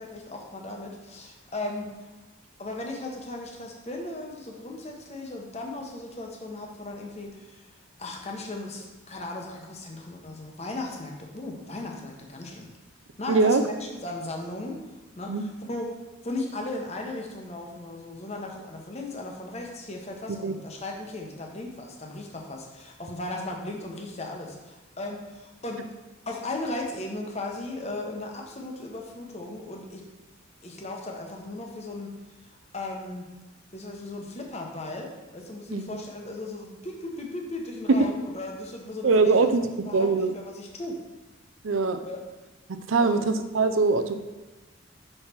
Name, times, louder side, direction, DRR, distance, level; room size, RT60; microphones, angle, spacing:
voice 1, 0.0-2.1 2.6-7.7 8.0-12.7 13.2-14.8 15.1-15.9 16.2-25.9 26.3-30.1 30.6-32.1 32.7-33.3 33.7-39.5 39.9-41.0 42.1-42.2 43.0-43.2, left 2 dB, 35° left, 1 dB, 1.0 m, -36 dB
voice 2, 13.3-13.6 15.3-15.4 20.4-20.5 35.7-36.0 37.9-38.1 39.0-39.7 39.9-40.3 41.6-42.0 42.9-44.1, right 3 dB, 85° right, 9 dB, 0.6 m, -22 dB
5.6 x 5.5 x 4.4 m, 1.2 s
head